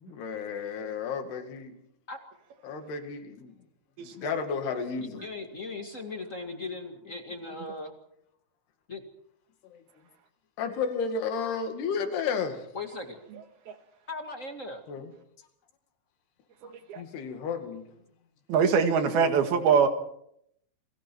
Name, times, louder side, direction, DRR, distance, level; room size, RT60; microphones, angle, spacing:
voice 1, 0.0-1.8 2.6-3.5 4.0-5.2 9.7-9.8 10.6-12.6 14.9-15.1 17.0-17.8, left 5 dB, 80° left, 6 dB, 4.3 m, -32 dB
voice 2, 4.0-4.3 13.7-13.8 16.9-17.0 18.5-19.9, right 6 dB, 70° right, 7 dB, 3.7 m, -23 dB
voice 3, 5.0-8.0 8.9-9.0 12.7-13.2 14.1-14.8, left 3 dB, 35° left, 5 dB, 1.2 m, -38 dB
29.5 x 23.0 x 4.6 m, 0.72 s
omnidirectional pair, 4.6 m